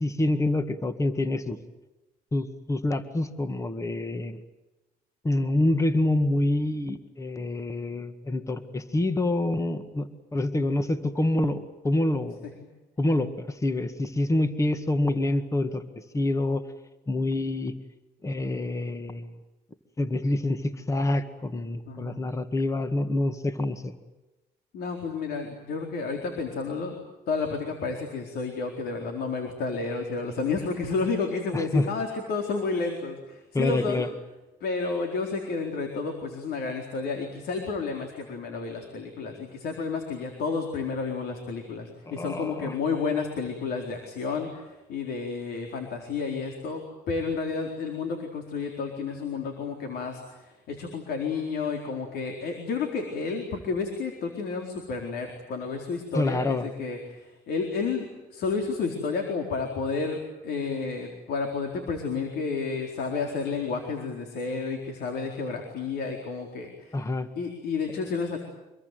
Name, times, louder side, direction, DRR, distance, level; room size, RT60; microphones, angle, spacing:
voice 1, 0.0-1.6 2.3-4.4 5.2-10.1 10.3-12.4 13.0-15.8 16.1-16.6 17.1-17.7 18.2-19.3 20.0-23.9 31.5-31.9 33.5-34.1 42.1-42.7 56.1-56.7 66.9-67.3, left 2 dB, 20° left, 9 dB, 2.0 m, -26 dB
voice 2, 21.9-22.2 24.7-34.0 34.6-67.1 67.4-68.4, left 4 dB, 70° left, 3 dB, 4.3 m, -31 dB
26.0 x 22.0 x 9.4 m, 1.0 s
cardioid pair, 110°, 17 cm